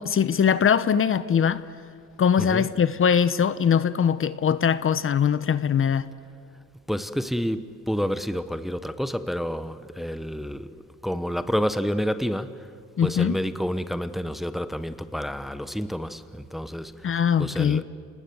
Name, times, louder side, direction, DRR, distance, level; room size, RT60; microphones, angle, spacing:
voice 1, 0.0-1.6 2.2-6.1 13.0-13.4 17.0-17.8, left 7 dB, 45° left, 15 dB, 0.8 m, -21 dB
voice 2, 2.4-2.7 6.9-10.7 11.0-12.7 13.0-17.8, equal, ahead, 12 dB, 1.0 m, -29 dB
29.0 x 19.5 x 7.9 m, 2.3 s
cardioid pair, 90°, 30 cm